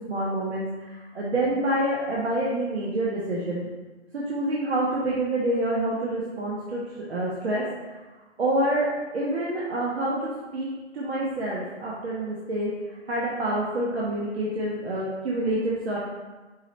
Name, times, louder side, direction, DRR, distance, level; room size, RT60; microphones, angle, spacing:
voice 1, 0.0-3.7 4.1-7.6 8.4-12.7 13.1-16.0, right 1 dB, 60° right, -5 dB, 0.9 m, -27 dB
4.6 x 3.0 x 3.2 m, 1.2 s
hypercardioid pair, 155°, 36 cm